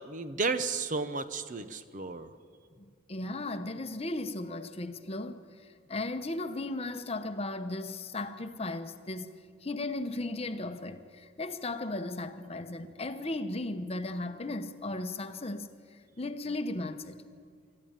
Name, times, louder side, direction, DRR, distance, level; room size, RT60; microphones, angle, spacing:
voice 1, 0.0-2.3, right 4 dB, 40° right, 0.7 m, -33 dB
voice 2, 2.8-9.3 9.6-17.2, left 2 dB, 30° left, 0.9 m, -36 dB
25.5 x 13.0 x 8.8 m
head